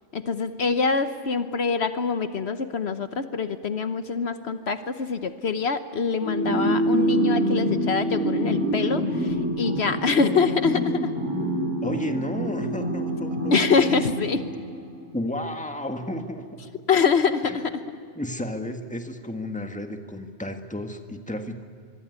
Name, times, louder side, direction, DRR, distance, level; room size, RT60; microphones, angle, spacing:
voice 1, 0.1-11.2 13.5-14.5 16.9-18.0, left 5 dB, 65° left, 10 dB, 1.2 m, -25 dB
sound 1, 6.2-15.0, right 1 dB, 25° right, 7.2 m, -26 dB
voice 2, 11.8-14.0 15.1-16.7 17.4-17.6 18.2-21.6, left 1 dB, 5° left, 5 dB, 1.7 m, -33 dB
25.0 x 23.5 x 9.6 m, 2.3 s
omnidirectional pair, 1.2 m